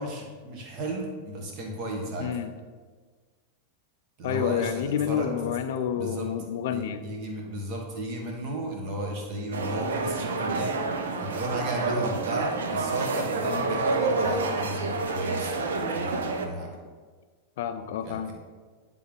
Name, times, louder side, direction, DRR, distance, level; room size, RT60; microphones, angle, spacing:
voice 1, 0.0-2.3 4.2-5.3 6.0-6.3 6.7-10.7 11.2-16.7 18.0-18.3, right 1 dB, 40° right, 1 dB, 1.5 m, -34 dB
voice 2, 2.2-2.5 4.2-7.0 13.4-13.8 17.6-18.3, left 8 dB, 55° left, 9 dB, 0.5 m, -29 dB
sound 1, 9.5-16.5, right 3 dB, 65° right, 0.6 m, -28 dB
10.0 x 3.7 x 3.6 m, 1.5 s
figure-of-eight pair, 90°, 0 cm